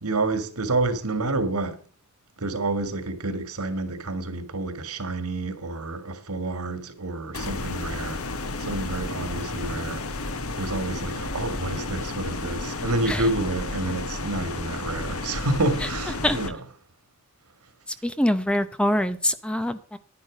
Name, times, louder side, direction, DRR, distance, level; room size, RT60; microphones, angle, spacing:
voice 1, 0.0-1.8 2.4-10.0 10.6-16.6, right 2 dB, 90° right, 2.0 m, -29 dB
sound 1, 7.3-16.5, left 2 dB, 70° left, 1.3 m, -32 dB
voice 2, 18.0-20.0, left 1 dB, 5° left, 0.7 m, -24 dB
10.5 x 10.0 x 5.0 m
head